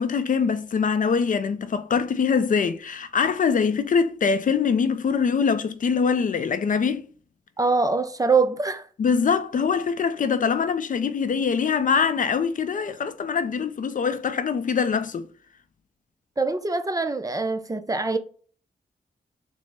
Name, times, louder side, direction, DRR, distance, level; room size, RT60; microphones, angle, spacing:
voice 1, 0.0-7.1 9.0-15.3, left 6 dB, 50° left, 0.4 m, -23 dB
voice 2, 7.6-8.9 16.4-18.2, right 3 dB, 20° right, 0.5 m, -23 dB
4.3 x 2.0 x 4.4 m
cardioid pair, 70°, 17 cm